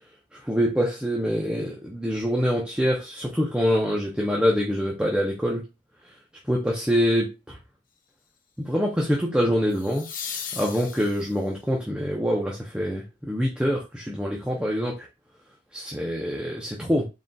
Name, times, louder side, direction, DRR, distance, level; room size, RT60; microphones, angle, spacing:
voice 1, 0.3-5.6 6.5-7.6 8.6-10.1 10.5-15.1 15.7-17.1, equal, 5° right, -2 dB, 0.6 m, -25 dB
sound 1, 6.7-7.0 9.7-11.6 14.5-14.6, left 7 dB, 45° left, 0.6 m, -37 dB
3.8 x 3.8 x 2.3 m, 0.26 s
head